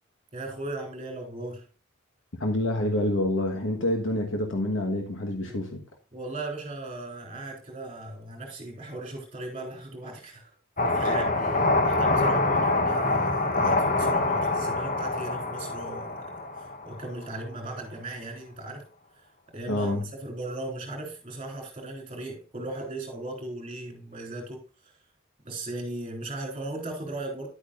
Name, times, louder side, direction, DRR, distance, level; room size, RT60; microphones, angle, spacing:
voice 1, 0.3-1.7 5.4-5.6 6.1-10.5 10.8-16.3 16.6-18.9 19.5-24.6 25.4-27.5, right 2 dB, 30° right, 3.6 m, -37 dB
voice 2, 2.4-5.8 19.7-20.0, left 1 dB, 65° left, 1.3 m, -27 dB
sound 1, 10.8-17.3, left 2 dB, 40° left, 1.0 m, -25 dB
10.5 x 8.6 x 2.5 m
head